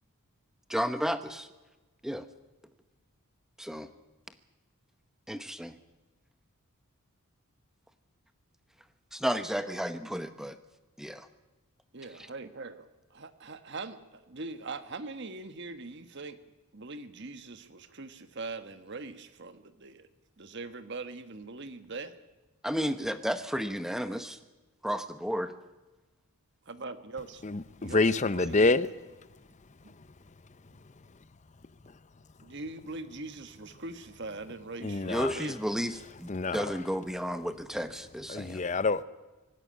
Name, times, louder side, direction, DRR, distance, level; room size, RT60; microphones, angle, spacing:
voice 1, 0.7-1.5 2.0-2.3 3.6-3.9 5.3-5.8 9.1-10.6 11.0-11.3 22.6-24.4 24.8-25.5 35.1-38.6, equal, ahead, 10 dB, 0.9 m, -32 dB
voice 2, 11.9-16.4 16.7-20.1 20.4-22.1 26.6-27.5 27.8-28.8 29.8-29.9 32.4-35.6, right 3 dB, 50° right, 10 dB, 1.3 m, -42 dB
voice 3, 27.4-28.9 34.8-35.3 36.3-36.7 38.3-39.0, left 3 dB, 30° left, 16 dB, 0.6 m, -27 dB
24.5 x 11.0 x 9.9 m, 1.2 s
head